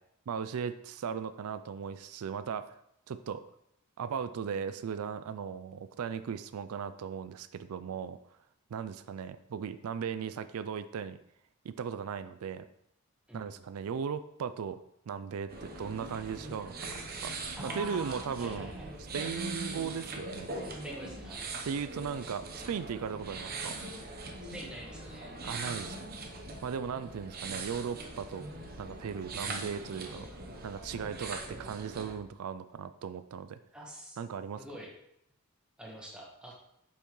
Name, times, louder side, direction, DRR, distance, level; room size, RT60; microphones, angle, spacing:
voice 1, 0.3-2.8 3.1-3.4 4.0-8.2 8.7-11.2 11.6-12.7 13.3-14.8 15.1-17.3 17.6-18.7 19.0-20.5 21.6-23.8 25.4-26.1 26.6-28.5 28.8-30.3 30.6-33.6 34.2-34.6, right 7 dB, 80° right, 12 dB, 0.4 m, -37 dB
voice 2, 13.3-13.6 17.6-18.9 20.8-21.5 24.4-25.4 29.4-30.3 33.7-34.2 34.6-34.9 35.8-36.5, right 1 dB, 5° right, -3 dB, 1.5 m, -46 dB
sound 1, 15.5-32.1, right 2 dB, 45° right, 0.9 m, -41 dB
8.3 x 5.6 x 3.1 m, 0.77 s
head